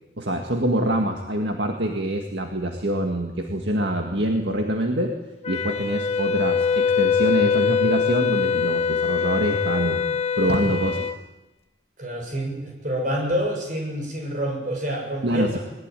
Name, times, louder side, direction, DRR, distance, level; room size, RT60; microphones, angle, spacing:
voice 1, 0.2-5.1 5.5-10.0 10.4-11.1 15.2-15.6, right 1 dB, 65° right, 2 dB, 2.0 m, -25 dB
Wind instrument woodwind instrument, 5.4-11.2, left 6 dB, 35° left, 0.7 m, -23 dB
voice 2, 12.0-15.6, equal, 45° right, 1 dB, 7.0 m, -28 dB
20.5 x 20.0 x 9.2 m, 1.1 s
head